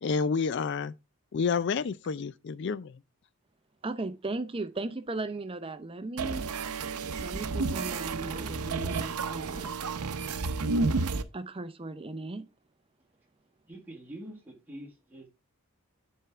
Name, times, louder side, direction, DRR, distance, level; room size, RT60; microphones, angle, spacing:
voice 1, 0.0-0.9 1.3-3.0, left 5 dB, 50° left, 0.4 m, -29 dB
voice 2, 3.8-6.5 7.2-9.8 11.3-12.5, right 2 dB, 25° right, 0.6 m, -37 dB
sound 1, 6.2-11.2, right 3 dB, 90° right, 0.7 m, -31 dB
voice 3, 13.7-15.3, right 1 dB, 10° right, 1.6 m, -45 dB
10.0 x 4.5 x 3.5 m
head